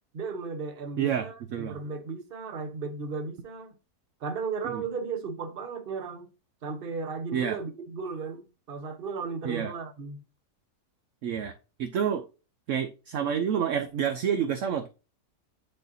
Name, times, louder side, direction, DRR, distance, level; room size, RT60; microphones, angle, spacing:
voice 1, 0.1-3.7 4.2-6.3 6.6-10.2, right 4 dB, 40° right, 1.0 m, -35 dB
voice 2, 1.0-1.8 4.6-4.8 7.3-7.6 9.4-9.7 11.2-11.5 11.8-12.2 12.7-14.9, right 8 dB, 65° right, 0.9 m, -28 dB
10.0 x 4.1 x 2.7 m
omnidirectional pair, 1.7 m